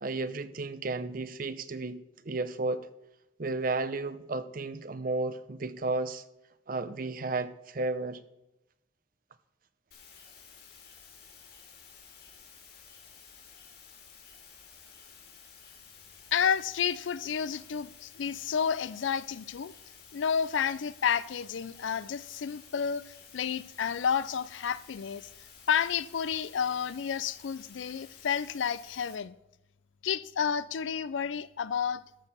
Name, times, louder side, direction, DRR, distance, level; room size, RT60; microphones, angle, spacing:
voice 1, 0.0-2.9 3.4-6.2 6.7-8.2, right 3 dB, 50° right, 0.6 m, -33 dB
sound 1, 9.9-29.2, left 6 dB, 55° left, 2.1 m, -53 dB
voice 2, 16.3-19.7 20.1-25.3 25.7-29.3 30.0-32.0, left 7 dB, 85° left, 0.4 m, -30 dB
13.0 x 4.7 x 6.7 m
head